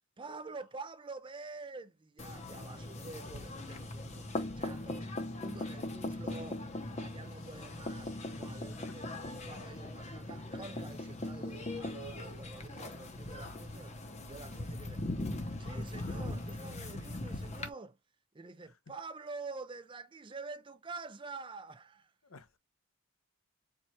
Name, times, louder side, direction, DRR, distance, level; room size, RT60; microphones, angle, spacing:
voice 1, 0.2-5.1 5.4-6.7 6.9-14.0 14.3-15.1 15.6-18.0 18.3-22.1, right 3 dB, 25° right, 0.5 m, -47 dB
sound 1, 2.2-17.7, left 1 dB, 30° left, 0.8 m, -40 dB
voice 2, 8.5-9.0 22.3-22.6, left 3 dB, 70° left, 0.9 m, -55 dB
4.7 x 2.4 x 4.2 m
head